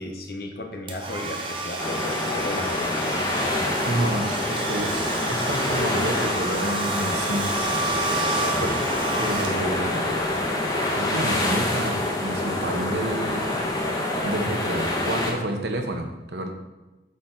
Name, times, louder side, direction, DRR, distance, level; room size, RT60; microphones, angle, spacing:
voice 1, 0.0-3.3 8.3-8.7, left 2 dB, 55° left, 3 dB, 1.0 m, -35 dB
Domestic sounds home sounds, 0.9-10.0, right 2 dB, 30° right, 0.8 m, -31 dB
sound 1, 1.8-15.3, left 1 dB, 20° left, 0.9 m, -26 dB
voice 2, 3.9-7.6 8.6-8.8 9.2-10.1 10.9-13.5 14.2-16.5, right 1 dB, 80° right, 4 dB, 1.0 m, -29 dB
8.4 x 4.4 x 4.0 m, 1.1 s
head